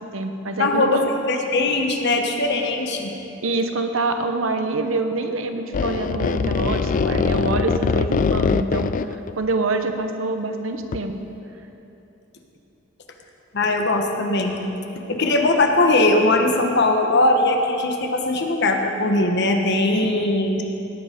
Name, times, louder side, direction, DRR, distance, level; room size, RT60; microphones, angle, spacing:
voice 1, 0.0-1.1 3.4-8.9 9.4-11.1 20.0-20.4, right 3 dB, 75° right, 6 dB, 0.9 m, -26 dB
voice 2, 0.6-3.1 13.5-14.6 15.1-20.6, left 2 dB, 60° left, 3 dB, 1.2 m, -20 dB
sound 1, 5.7-9.3 10.9-11.0, left 5 dB, 40° left, 0.3 m, -22 dB
18.0 x 8.0 x 5.1 m, 3.0 s
head